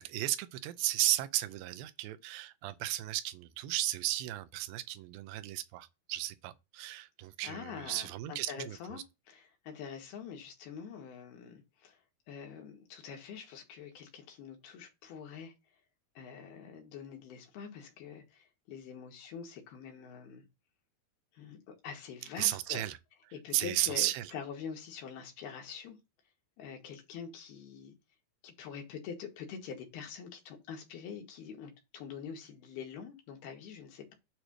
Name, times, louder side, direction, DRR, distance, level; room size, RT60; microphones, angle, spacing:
voice 1, 0.0-9.0 22.4-23.0 23.5-24.3, right 15 dB, 80° right, 2.2 m, -34 dB
voice 2, 7.4-9.0 9.3-12.0 12.3-15.5 16.2-20.4 21.3-22.9 23.3-26.0 26.6-27.9 28.4-34.1, left 7 dB, 75° left, 3.4 m, -45 dB
8.9 x 3.3 x 6.2 m
omnidirectional pair, 4.6 m